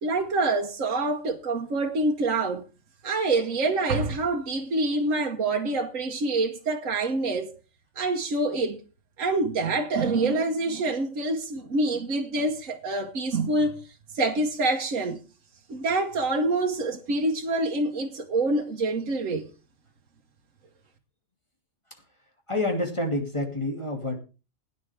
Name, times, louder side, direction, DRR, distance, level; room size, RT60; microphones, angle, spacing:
voice 1, 0.0-2.6 3.0-7.5 8.0-8.8 9.2-13.7 14.1-15.2 15.7-19.5, right 2 dB, 80° right, 1.6 m, -26 dB
voice 2, 22.5-24.2, left 1 dB, 20° left, 2.6 m, -28 dB
17.0 x 9.6 x 3.5 m
omnidirectional pair, 1.4 m